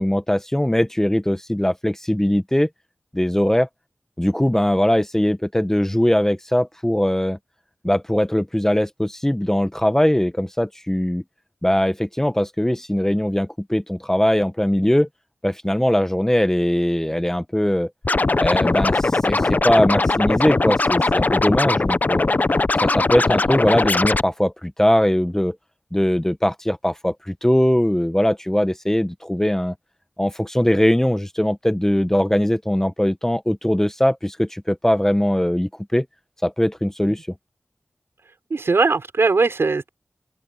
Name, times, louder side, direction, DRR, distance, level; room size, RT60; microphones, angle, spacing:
voice 1, 0.0-2.7 3.1-3.7 4.2-7.4 7.8-11.2 11.6-15.1 15.4-17.9 18.4-22.3 22.8-25.6 25.9-29.7 30.2-36.1 36.4-37.2, left 1 dB, 10° left, 1.1 m, -20 dB
Scratching (performance technique), 18.0-24.2, left 3 dB, 45° left, 0.7 m, -20 dB
voice 2, 38.5-39.9, right 4 dB, 85° right, 6.0 m, -19 dB
open air
wide cardioid pair, 65°, 4 cm